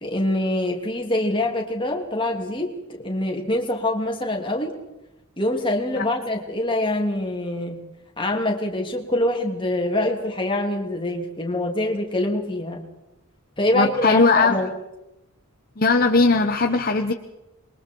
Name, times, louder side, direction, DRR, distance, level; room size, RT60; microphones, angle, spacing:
voice 1, 0.0-4.7 5.4-7.8 8.2-12.8 13.6-14.7, left 1 dB, 20° left, 1 dB, 3.0 m, -25 dB
voice 2, 13.7-14.6 15.8-17.1, left 3 dB, 40° left, 5 dB, 1.0 m, -18 dB
27.5 x 22.5 x 4.7 m, 0.95 s
head